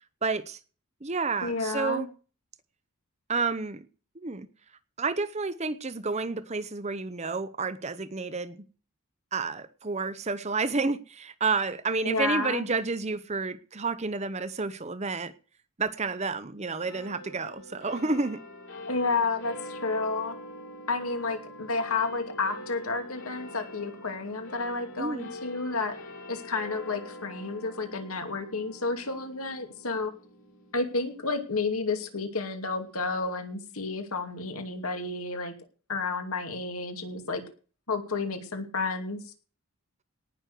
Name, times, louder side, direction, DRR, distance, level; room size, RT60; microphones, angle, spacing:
voice 1, 0.2-0.6 1.0-2.1 3.3-3.9 4.2-4.5 5.0-8.6 9.3-15.3 15.8-18.4 25.0-25.3, right 4 dB, 30° right, 14 dB, 0.8 m, -30 dB
voice 2, 1.4-2.0 12.0-12.7 18.9-20.4 20.9-25.9 26.3-30.1 30.7-35.5 35.9-37.4 37.9-39.2, left 3 dB, 75° left, 6 dB, 2.6 m, -31 dB
sound 1, 16.8-33.5, left 1 dB, 60° left, 4.6 m, -44 dB
18.5 x 6.3 x 6.7 m, 0.38 s
head